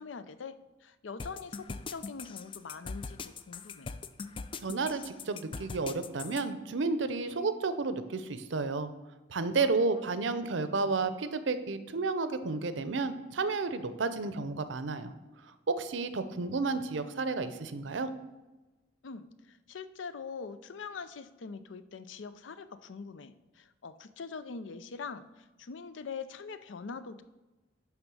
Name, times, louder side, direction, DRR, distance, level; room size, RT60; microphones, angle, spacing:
voice 1, 0.0-3.9 9.6-10.1 10.6-10.7 19.0-27.2, left 5 dB, 80° left, 13 dB, 0.5 m, -43 dB
sound 1, 1.2-6.4, left 4 dB, 30° left, 0.3 m, -41 dB
voice 2, 4.6-8.9 9.3-15.1 15.7-18.1, right 3 dB, 75° right, 11 dB, 0.6 m, -31 dB
10.5 x 3.6 x 6.1 m, 1.1 s
head